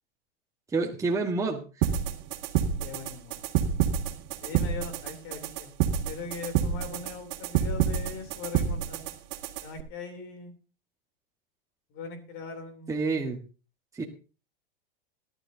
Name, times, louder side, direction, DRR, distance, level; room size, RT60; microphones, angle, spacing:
voice 1, 0.7-1.6 12.9-13.4 13.9-14.1, right 3 dB, 10° right, 0 dB, 1.5 m, -28 dB
sound 1, 1.8-9.8, right 9 dB, 60° right, 1.9 m, -29 dB
voice 2, 2.8-3.4 4.4-5.7 6.0-9.1 9.6-10.5 11.9-12.9, left 4 dB, 45° left, 6 dB, 3.3 m, -40 dB
18.0 x 12.0 x 2.8 m, 0.34 s
supercardioid pair, 135°, 29 cm